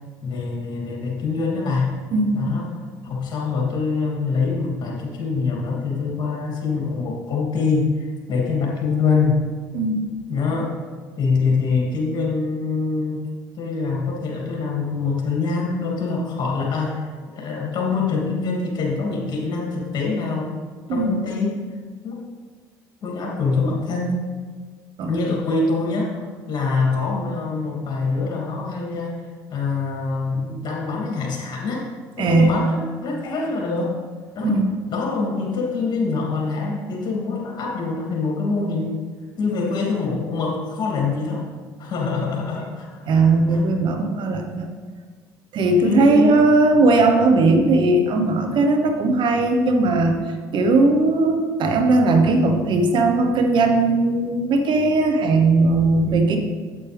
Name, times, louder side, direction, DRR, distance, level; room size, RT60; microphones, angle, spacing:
voice 1, 0.2-1.9 2.3-9.4 10.3-10.7 11.2-13.2 13.5-20.6 20.9-21.5 22.0-22.3 23.0-24.2 25.1-29.2 29.5-31.9 32.2-33.9 34.3-34.6 34.9-39.0 39.4-41.5 41.8-43.6 45.8-46.5, left 4 dB, 50° left, -2 dB, 2.8 m, -24 dB
voice 2, 2.1-2.4 9.7-10.1 20.9-21.2 25.0-25.1 32.2-32.5 34.4-34.7 43.1-44.7 45.5-50.2 50.5-56.4, right 2 dB, 60° right, 4 dB, 1.2 m, -18 dB
8.5 x 8.5 x 3.5 m, 1.5 s
supercardioid pair, 75°, 9 cm